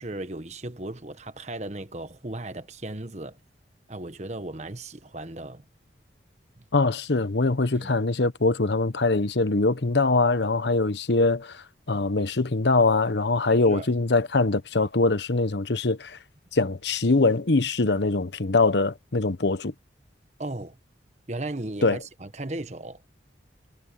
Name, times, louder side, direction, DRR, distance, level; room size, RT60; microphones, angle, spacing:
voice 1, 0.0-3.4 3.9-5.6 7.7-8.0 13.7-13.9 20.4-20.8 21.3-23.0, right 2 dB, 40° right, 1.3 m, -36 dB
voice 2, 6.7-16.2 16.5-19.7 21.8-22.0, left 3 dB, 70° left, 1.0 m, -23 dB
head